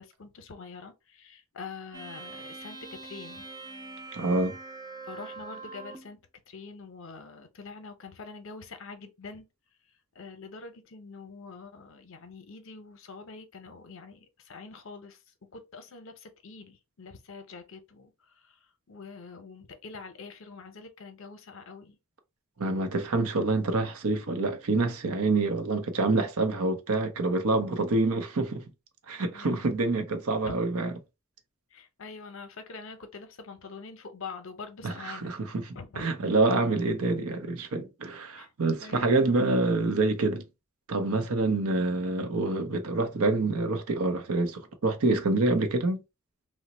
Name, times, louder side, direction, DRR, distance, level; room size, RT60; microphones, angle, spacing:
voice 1, 0.0-3.4 5.1-6.2 6.5-9.5 10.1-15.2 15.5-18.6 18.9-22.0 29.3-29.7 30.4-30.6 31.7-35.3 35.7-36.0 38.4-38.5 38.8-39.4, left 4 dB, 60° left, 0.6 m, -45 dB
sound 1, 1.9-6.1, right 3 dB, 20° right, 0.4 m, -43 dB
voice 2, 4.1-4.6 22.6-28.6 29.1-30.9 34.8-40.4 40.9-46.0, right 3 dB, 75° right, 0.6 m, -27 dB
2.9 x 2.1 x 3.9 m
head